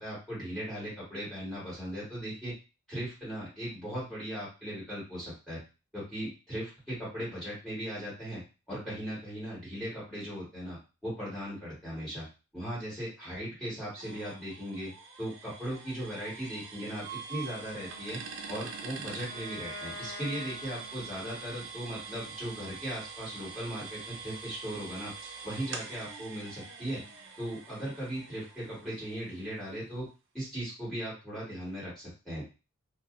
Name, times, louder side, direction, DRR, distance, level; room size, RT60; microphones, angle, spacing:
voice 1, 0.0-2.5 2.9-5.6 5.9-8.4 8.7-12.3 12.5-14.9 15.2-18.2 18.5-25.1 25.4-27.0 27.4-30.0 30.3-32.4, equal, ahead, -9 dB, 1.5 m, -38 dB
sound 1, 14.0-29.6, right 5 dB, 60° right, 0.4 m, -45 dB
Wind instrument woodwind instrument, 17.6-21.8, left 2 dB, 50° left, 0.7 m, -47 dB
2.8 x 2.0 x 2.4 m, 0.31 s
head